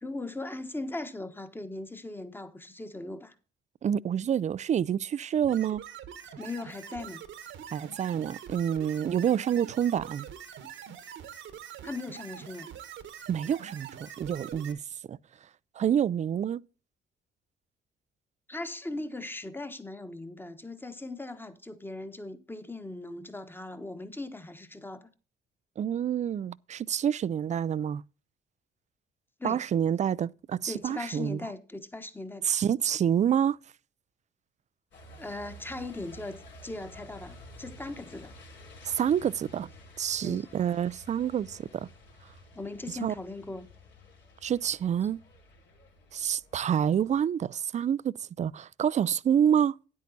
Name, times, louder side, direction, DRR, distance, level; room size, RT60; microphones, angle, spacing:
voice 1, 0.0-3.3 6.4-7.2 11.8-12.7 18.5-25.1 29.4-29.6 30.7-32.5 35.2-38.3 40.2-40.5 42.5-43.7, left 2 dB, 10° left, 1.2 m, -39 dB
voice 2, 3.8-5.8 7.7-10.3 13.3-14.8 15.1-15.2 15.8-16.6 25.8-28.0 29.4-31.4 32.4-33.6 38.9-39.7 40.0-41.9 42.9-43.1 44.4-45.2 46.1-49.7, right 9 dB, 35° right, 0.4 m, -27 dB
sound 1, 5.4-14.7, right 9 dB, 75° right, 1.3 m, -44 dB
Truck, 34.9-47.2, left 1 dB, 70° left, 3.5 m, -51 dB
9.7 x 8.5 x 4.0 m
cardioid pair, 90°, 20 cm